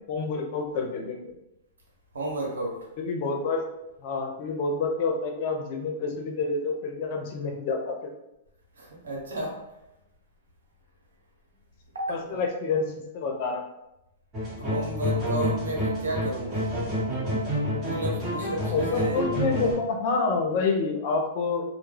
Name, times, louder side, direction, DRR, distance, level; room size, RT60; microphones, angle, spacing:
voice 1, 0.1-1.3 3.0-3.6 4.0-8.0 12.1-12.9 13.1-13.7 18.6-21.6, left 4 dB, 55° left, 2 dB, 0.6 m, -28 dB
voice 2, 2.1-2.9 8.7-9.6 11.9-12.4 14.6-16.7 17.9-19.3, right 1 dB, 85° right, -2 dB, 0.8 m, -32 dB
sound 1, 14.3-19.7, equal, 25° right, 1.1 m, -28 dB
2.2 x 2.1 x 3.2 m, 0.89 s
hypercardioid pair, 120°, 0 cm